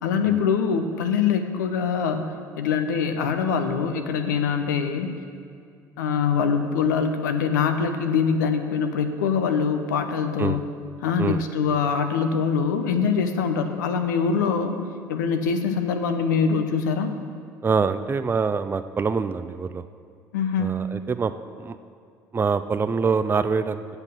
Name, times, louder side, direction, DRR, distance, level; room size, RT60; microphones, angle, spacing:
voice 1, 0.0-5.1 6.0-10.6 11.0-14.8 15.1-17.1 20.3-20.8, left 6 dB, 85° left, 7 dB, 0.7 m, -23 dB
voice 2, 17.6-19.8 20.6-21.3 21.6-21.8 22.3-24.0, right 5 dB, 20° right, 11 dB, 0.4 m, -25 dB
8.0 x 6.7 x 7.0 m, 2.3 s
hypercardioid pair, 65°, 10 cm